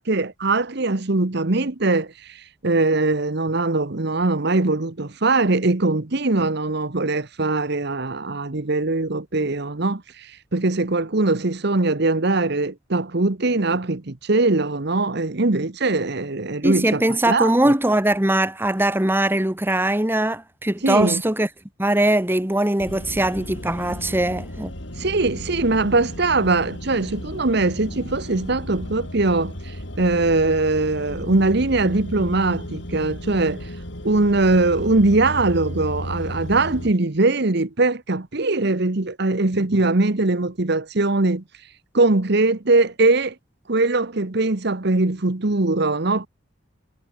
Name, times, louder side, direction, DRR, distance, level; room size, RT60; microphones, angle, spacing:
voice 1, 0.0-17.0 17.3-17.7 20.8-21.2 25.0-33.7 34.0-41.4 41.9-43.3 43.7-46.3, right 2 dB, 60° right, 1.2 m, -21 dB
voice 2, 16.6-21.5 21.8-24.7, right 1 dB, 10° right, 1.3 m, -21 dB
sound 1, 22.8-36.9, left 1 dB, 70° left, 5.2 m, -34 dB
head